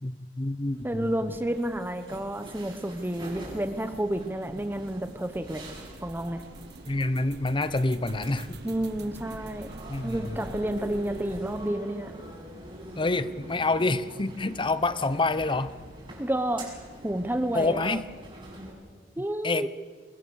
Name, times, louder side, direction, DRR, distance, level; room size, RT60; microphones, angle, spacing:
voice 1, 0.0-1.3 6.9-8.6 9.9-10.5 13.0-15.7 17.5-18.1 19.4-19.7, left 2 dB, 30° left, 14 dB, 0.9 m, -27 dB
sound 1, 0.6-11.7, right 2 dB, 65° right, 1.5 m, -47 dB
voice 2, 0.8-5.6 6.0-6.4 8.6-9.7 10.0-12.1 16.2-16.7 17.0-18.0 19.2-19.7, right 1 dB, 10° right, 9 dB, 1.0 m, -30 dB
sound 2, 1.0-18.7, right 1 dB, 30° right, 6.7 m, -44 dB
25.0 x 21.0 x 7.1 m, 1.5 s
head